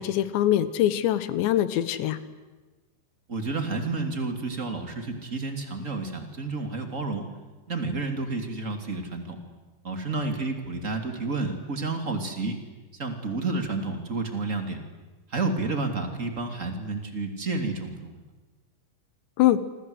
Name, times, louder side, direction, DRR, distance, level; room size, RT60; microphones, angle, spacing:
voice 1, 0.0-2.2 19.4-19.6, left 12 dB, 80° left, 13 dB, 3.4 m, -23 dB
voice 2, 3.3-7.3 7.7-9.4 9.8-12.6 13.0-14.8 15.3-18.2, right 3 dB, 25° right, 5 dB, 2.1 m, -30 dB
27.5 x 26.0 x 8.1 m, 1.2 s
omnidirectional pair, 5.2 m